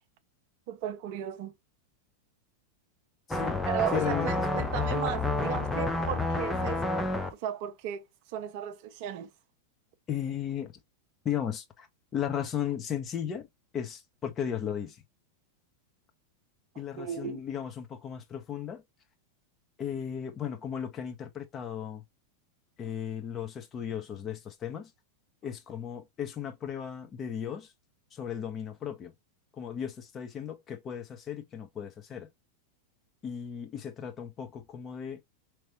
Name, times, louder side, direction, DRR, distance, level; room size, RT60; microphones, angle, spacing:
voice 1, 0.7-1.5 3.7-7.0 7.4-8.0 8.3-9.3 17.0-17.4, right 10 dB, 45° right, 0.7 m, -35 dB
voice 2, 3.3-4.7 10.1-10.7 11.2-11.9 12.1-13.5 13.7-15.0 16.8-18.8 19.8-22.0 22.8-24.9 25.4-27.7 28.1-29.1 29.6-32.3 33.2-35.2, left 9 dB, 25° left, 0.9 m, -35 dB
sound 1, 3.3-7.3, left 2 dB, 5° left, 0.6 m, -29 dB
5.2 x 3.0 x 2.8 m
figure-of-eight pair, 90°, 0 cm